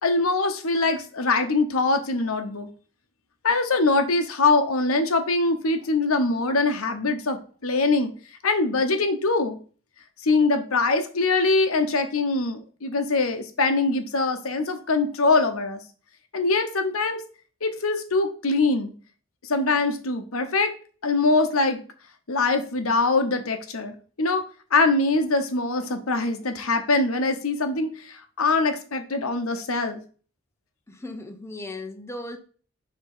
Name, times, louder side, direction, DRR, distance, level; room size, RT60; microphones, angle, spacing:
voice 1, 0.0-2.7 3.4-8.1 8.4-9.6 10.2-15.8 16.3-17.2 17.6-18.9 19.4-20.7 21.0-21.8 22.3-24.4 24.7-30.0, left 3 dB, 90° left, 1.0 m, -23 dB
voice 2, 30.9-32.4, left 2 dB, 15° left, 0.6 m, -36 dB
5.1 x 3.7 x 5.5 m
head